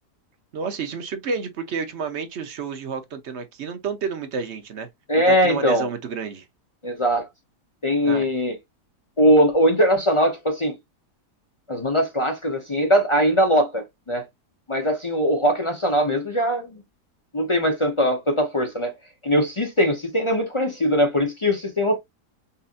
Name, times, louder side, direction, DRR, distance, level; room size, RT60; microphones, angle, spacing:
voice 1, 0.5-4.9 5.1-6.5 8.0-8.3, right 5 dB, 55° right, 0.8 m, -30 dB
voice 2, 5.1-5.9 6.8-7.3 7.8-8.6 9.2-10.8 11.7-14.3 14.7-16.8 17.3-18.9 19.2-22.0, equal, 35° left, 0.5 m, -21 dB
5.5 x 2.6 x 2.4 m
omnidirectional pair, 1.7 m